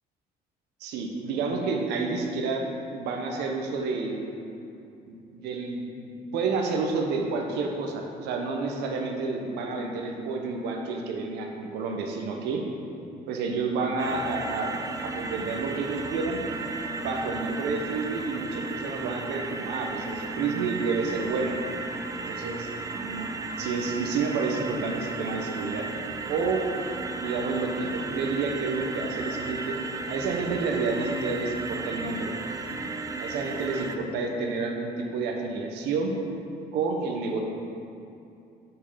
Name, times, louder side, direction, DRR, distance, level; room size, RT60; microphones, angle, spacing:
voice 1, 0.8-4.2 5.0-6.1 6.3-12.6 13.3-14.7 15.0-16.4 16.9-21.5 22.3-23.3 23.6-25.9 26.3-26.6 27.2-29.8 30.1-32.3 33.2-36.1 36.7-37.4, right 4 dB, 85° right, 2 dB, 0.9 m, -30 dB
sound 1, 14.0-34.0, right 3 dB, 20° right, 0.4 m, -34 dB
5.3 x 4.6 x 5.5 m, 2.7 s
cardioid pair, 110°, 17 cm